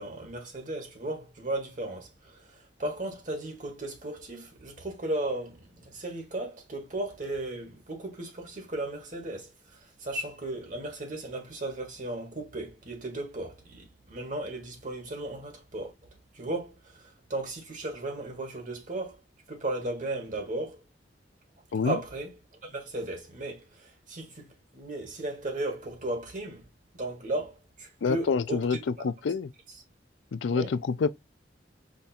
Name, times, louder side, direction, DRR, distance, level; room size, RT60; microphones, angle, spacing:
voice 1, 0.0-15.9 16.3-19.2 19.5-20.8 21.8-22.3 22.6-26.6 26.9-29.1 30.5-30.7, right 2 dB, 45° right, 1.5 m, -36 dB
voice 2, 28.0-29.5 30.3-31.1, left 5 dB, 85° left, 0.4 m, -27 dB
5.1 x 2.4 x 4.2 m
head